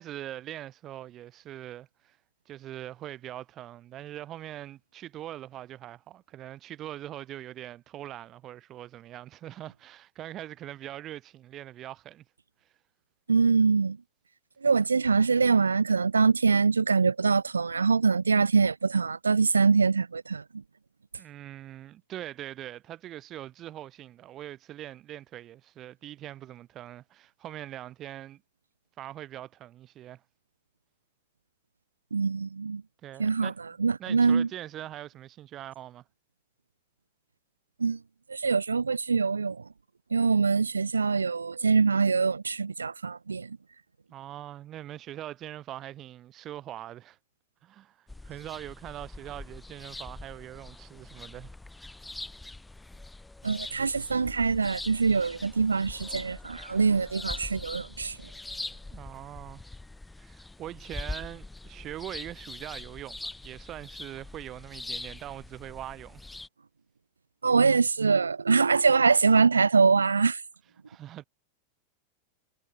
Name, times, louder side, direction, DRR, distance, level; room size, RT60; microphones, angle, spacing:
voice 1, 0.0-2.2 2.4-12.2 21.2-28.4 29.0-30.2 33.0-33.6 34.0-36.0 44.1-47.2 47.6-51.5 58.9-59.6 60.2-66.2 70.9-71.2, right 13 dB, 30° right, 1.5 m, -42 dB
voice 2, 13.3-14.0 14.6-20.4 32.1-32.8 33.2-33.5 33.8-34.5 37.8-38.0 38.3-39.6 40.1-43.6 53.4-58.2 67.4-70.4, right 5 dB, 75° right, 0.5 m, -24 dB
sound 1, 48.1-66.5, left 2 dB, 5° left, 5.0 m, -43 dB
figure-of-eight pair, 90°, 0 cm